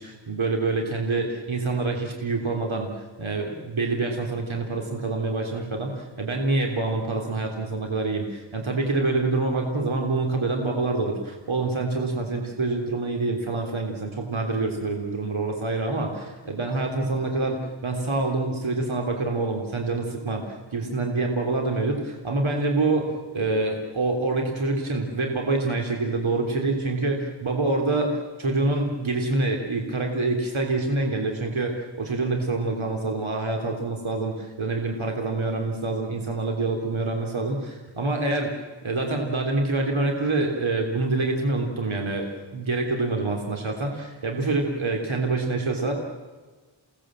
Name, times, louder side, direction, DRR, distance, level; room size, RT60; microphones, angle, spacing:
voice 1, 0.0-2.9 3.2-38.5 38.8-45.9, right 3 dB, 75° right, 2 dB, 3.4 m, -26 dB
29.5 x 18.5 x 7.7 m, 1.4 s
wide cardioid pair, 55°, 48 cm